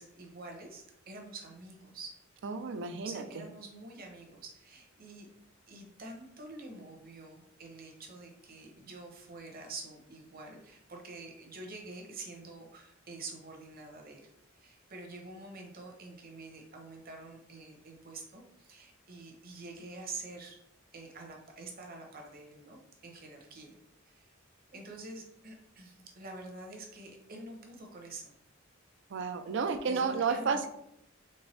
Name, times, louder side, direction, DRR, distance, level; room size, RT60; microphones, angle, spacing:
voice 1, 0.0-2.1 2.8-5.3 5.7-14.3 14.5-20.6 20.9-23.8 24.0-24.3 24.7-28.3 29.8-30.6, right 3 dB, 50° right, 2 dB, 1.0 m, -47 dB
voice 2, 2.4-3.2 29.1-30.7, right 5 dB, 65° right, 9 dB, 0.4 m, -31 dB
4.4 x 3.5 x 3.3 m, 0.76 s
head